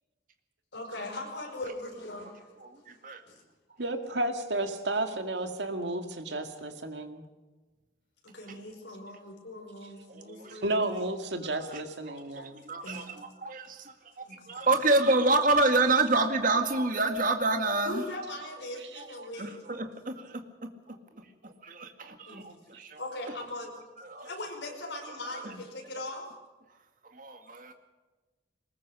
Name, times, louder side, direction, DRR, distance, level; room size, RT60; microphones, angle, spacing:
voice 1, 0.7-2.5 3.3-3.4 8.2-10.9 12.8-13.1 14.2-14.6 17.9-19.6 22.3-22.5 23.0-23.8 24.2-26.3, left 1 dB, 85° left, 2 dB, 5.4 m, -40 dB
voice 2, 3.8-7.2 10.5-12.6 18.9-19.0 22.7-22.8, right 2 dB, 80° right, 6 dB, 2.2 m, -32 dB
voice 3, 10.1-10.6 12.1-18.0 19.2-20.4 21.4-23.0 24.1-24.3 25.4-25.5 27.1-27.7, right 2 dB, 50° right, 6 dB, 2.0 m, -28 dB
22.5 x 20.0 x 6.4 m, 1.2 s
head